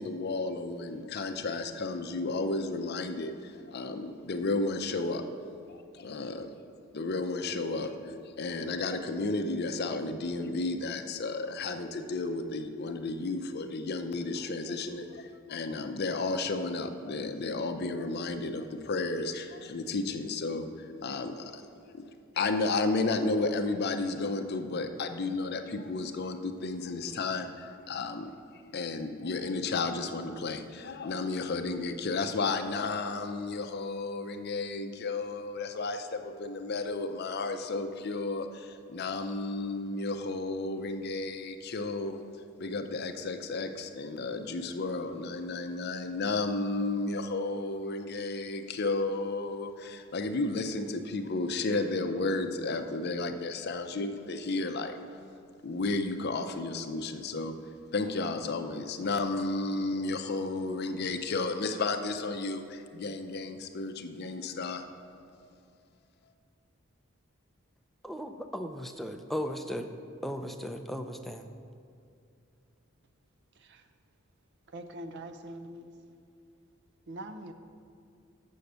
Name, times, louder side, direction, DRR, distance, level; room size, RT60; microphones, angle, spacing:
voice 1, 0.0-5.2 5.7-6.5 6.9-21.6 21.9-22.1 22.3-28.3 28.7-42.2 42.6-54.9 55.6-57.6 57.9-64.8, left 3 dB, 50° left, 7 dB, 0.5 m, -33 dB
voice 2, 68.0-69.9 70.2-71.5, equal, ahead, 5 dB, 0.4 m, -36 dB
voice 3, 73.6-73.9 74.7-75.9 77.1-77.5, right 1 dB, 55° right, 8 dB, 0.6 m, -43 dB
7.0 x 6.5 x 6.7 m, 2.4 s
head